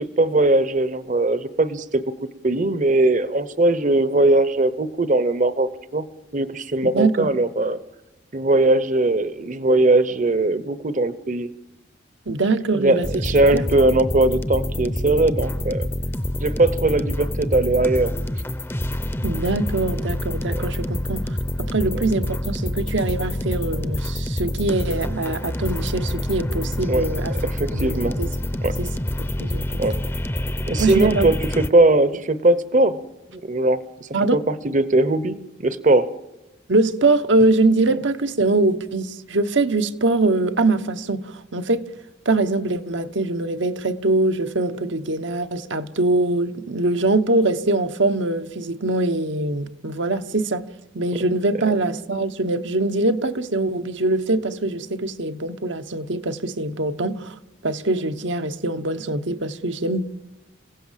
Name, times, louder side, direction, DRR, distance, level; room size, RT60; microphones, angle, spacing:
voice 1, 0.0-2.0 2.4-6.0 6.3-7.8 8.3-11.5 12.7-15.9 16.4-18.1 20.5-20.6 21.9-22.0 26.9-27.1 27.4-28.2 28.6-28.7 29.8-30.0 30.7-33.0 33.3-36.1, right 2 dB, 40° right, 0.9 m, -20 dB
voice 2, 6.8-7.3 12.3-13.1 13.5-13.6 19.2-27.3 27.7-28.3 28.8-28.9 29.2-29.8 30.8-31.3 34.1-34.4 36.7-41.8 42.2-50.6 50.9-57.3 57.6-60.1, right 2 dB, 75° right, 1.2 m, -23 dB
sound 1, 13.0-31.7, left 1 dB, 10° left, 0.7 m, -27 dB
27.5 x 16.5 x 7.5 m
head